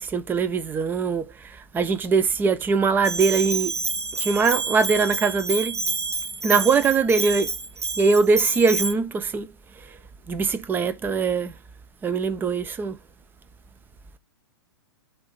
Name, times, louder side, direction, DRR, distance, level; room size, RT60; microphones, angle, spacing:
voice 1, 0.0-3.7 4.2-5.8 6.4-7.5 8.0-9.5 10.3-11.5 12.0-13.0, right 4 dB, 15° right, 0.7 m, -22 dB
Bell, 3.0-8.9, right 4 dB, 80° right, 1.0 m, -28 dB
7.8 x 2.8 x 5.1 m
figure-of-eight pair, 105°, 14 cm